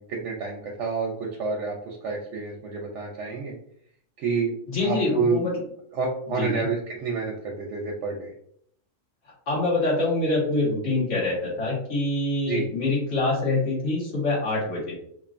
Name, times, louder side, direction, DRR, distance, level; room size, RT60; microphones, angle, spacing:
voice 1, 0.0-3.6 4.2-4.5 4.8-5.4 5.9-8.3 12.5-12.7, right 4 dB, 70° right, 0 dB, 0.8 m, -29 dB
voice 2, 4.7-5.5 6.4-6.6 9.5-14.9, left 2 dB, 50° left, -6 dB, 1.6 m, -25 dB
3.0 x 2.4 x 2.4 m, 0.67 s
omnidirectional pair, 1.4 m